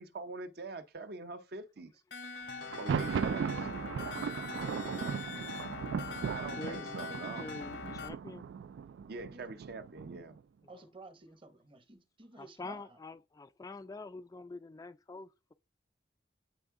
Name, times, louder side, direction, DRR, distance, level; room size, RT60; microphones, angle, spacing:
voice 1, 0.0-1.9 2.8-3.7 6.3-7.5 9.1-10.4, right 3 dB, 60° right, 0.7 m, -43 dB
sound 1, 2.1-8.1, left 4 dB, 70° left, 0.9 m, -42 dB
Thunder, 2.6-10.4, right 6 dB, 90° right, 0.3 m, -37 dB
voice 2, 4.5-5.1 9.3-9.5 10.7-13.0, right 2 dB, 30° right, 0.8 m, -54 dB
voice 3, 6.6-6.9 7.4-8.5 12.4-15.3, left 3 dB, 20° left, 0.3 m, -45 dB
8.7 x 3.6 x 3.6 m
head